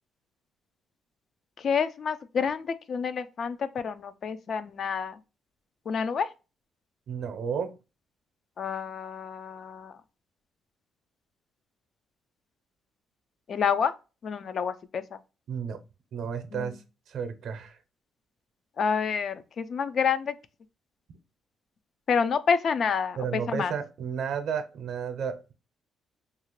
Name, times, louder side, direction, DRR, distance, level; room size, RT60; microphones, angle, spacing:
voice 1, 1.6-5.2 5.9-6.3 8.6-9.9 13.5-13.9 14.2-15.0 16.5-16.7 18.8-20.3 22.1-23.7, left 6 dB, 55° left, 0.3 m, -28 dB
voice 2, 7.1-7.7 15.5-15.8 16.1-16.8 17.1-17.8 23.2-25.5, right 7 dB, 70° right, 0.5 m, -32 dB
2.8 x 2.4 x 3.0 m
cardioid pair, 90°, 0 cm